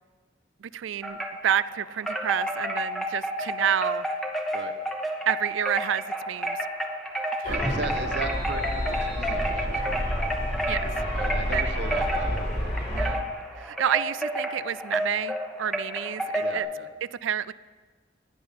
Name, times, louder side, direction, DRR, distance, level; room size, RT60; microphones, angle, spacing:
voice 1, 0.6-4.1 5.3-6.6 7.4-7.6 10.7-10.9 11.5-11.8 12.9-13.3 13.6-16.7 17.0-17.5, right 9 dB, 90° right, 18 dB, 0.4 m, -29 dB
Wind chime, 1.0-1.7 2.1-16.6, equal, ahead, 1.1 m, -30 dB
sound 1, 7.4-13.1, equal, 45° left, 4.0 m, -30 dB
voice 2, 7.4-10.2 11.1-13.1 16.4-16.9, right 3 dB, 65° right, 8 dB, 1.0 m, -37 dB
15.0 x 9.9 x 5.2 m, 1.4 s
head